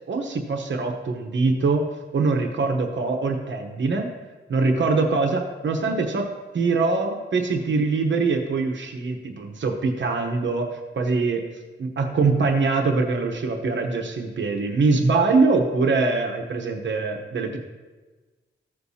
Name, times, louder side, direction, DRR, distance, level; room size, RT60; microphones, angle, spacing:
voice 1, 0.1-1.8 2.1-4.1 4.5-6.3 6.5-11.4 11.8-17.6, right 3 dB, 65° right, 3 dB, 0.9 m, -23 dB
15.0 x 6.7 x 2.8 m, 1.3 s
wide cardioid pair, 105°, 21 cm